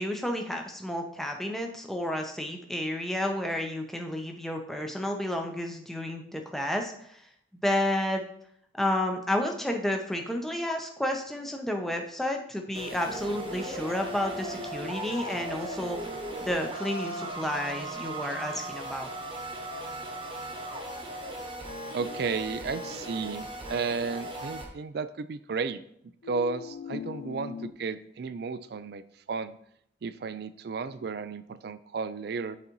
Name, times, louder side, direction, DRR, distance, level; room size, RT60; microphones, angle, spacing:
voice 1, 0.0-7.2 7.6-8.2 8.7-16.0 16.4-19.1, left 1 dB, ahead, 2 dB, 0.6 m, -31 dB
sound 1, 12.7-24.6, right 1 dB, 25° right, 1.0 m, -37 dB
voice 2, 21.9-25.8 26.3-29.0 29.3-29.6 30.0-32.6, right 5 dB, 55° right, 13 dB, 0.3 m, -33 dB
sound 2, 22.0-23.3 26.2-27.7, left 7 dB, 55° left, 0.3 m, -41 dB
12.0 x 4.0 x 3.0 m, 0.71 s
head